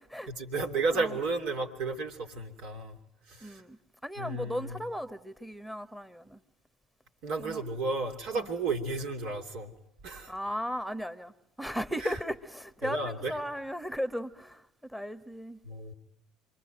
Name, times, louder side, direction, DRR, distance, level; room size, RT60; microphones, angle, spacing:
voice 1, 0.3-3.0 3.3-3.6 4.2-4.8 7.2-9.7 10.0-10.3 12.0-12.2 12.8-13.4 15.6-15.9, right 3 dB, 55° right, 2.9 m, -33 dB
voice 2, 3.4-6.4 7.4-7.6 8.3-8.5 10.3-15.6, equal, 5° right, 1.6 m, -36 dB
28.5 x 22.5 x 9.2 m
figure-of-eight pair, 60°, 0 cm